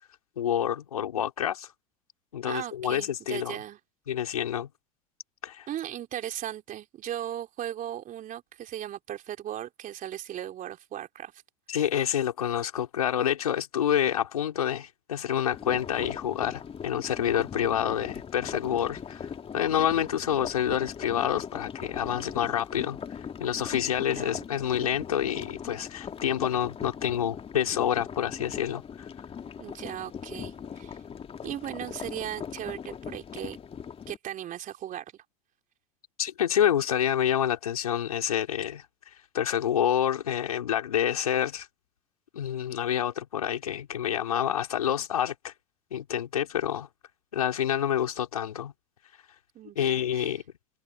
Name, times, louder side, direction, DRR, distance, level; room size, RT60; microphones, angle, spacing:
voice 1, 0.4-1.7 2.3-3.6 4.1-4.7 5.4-5.7 11.7-29.1 36.2-38.8 39.3-41.7 42.3-45.5 45.9-46.9 47.3-48.7 49.8-50.4, left 10 dB, 90° left, 4.6 m, -28 dB
voice 2, 2.5-3.8 5.7-11.3 24.0-24.4 29.6-31.0 31.4-33.6 34.1-35.2 49.5-50.3, right 11 dB, 45° right, 4.0 m, -37 dB
sound 1, 15.5-34.2, left 7 dB, 30° left, 2.7 m, -40 dB
hypercardioid pair, 80°, 18 cm